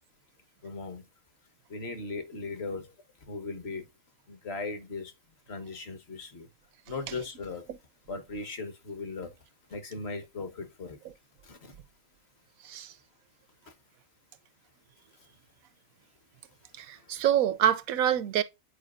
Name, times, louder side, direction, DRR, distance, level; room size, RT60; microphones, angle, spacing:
voice 1, 0.6-1.0 1.7-2.9 3.3-3.8 4.3-5.1 5.5-6.5 6.9-7.6 8.1-9.3 9.7-11.0 11.4-11.7, left 3 dB, 50° left, 1.4 m, -38 dB
voice 2, 16.8-18.4, right 10 dB, 85° right, 1.2 m, -26 dB
8.5 x 4.7 x 2.4 m
omnidirectional pair, 1.4 m